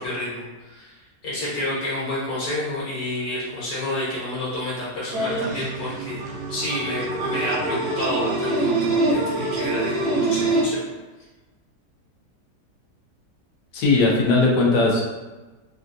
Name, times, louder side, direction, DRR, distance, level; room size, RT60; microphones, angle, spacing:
voice 1, 0.0-6.2 6.5-10.8, left 1 dB, 65° left, -8 dB, 1.7 m, -29 dB
sound 1, 5.1-10.6, right 2 dB, 65° right, 0.9 m, -24 dB
voice 2, 13.7-15.1, left 3 dB, 85° left, -2 dB, 1.3 m, -18 dB
3.6 x 2.3 x 2.6 m, 1.2 s
omnidirectional pair, 1.7 m